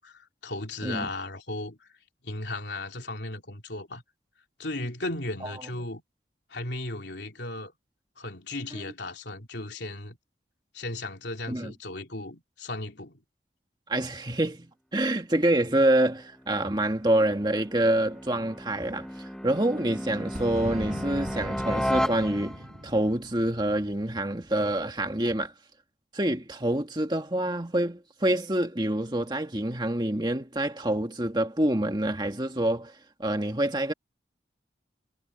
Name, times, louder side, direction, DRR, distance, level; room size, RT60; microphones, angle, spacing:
voice 1, 0.0-1.9 2.2-4.0 4.6-6.0 6.5-7.7 8.2-10.2 10.7-13.1, left 2 dB, 75° left, 3.3 m, -36 dB
voice 2, 13.9-14.7 14.9-22.6 22.8-25.5 26.1-32.9 33.2-33.9, right 1 dB, 25° right, 1.8 m, -26 dB
sound 1, 16.4-22.8, equal, 5° left, 0.9 m, -34 dB
Boom, 20.3-25.0, equal, 40° right, 5.0 m, -40 dB
head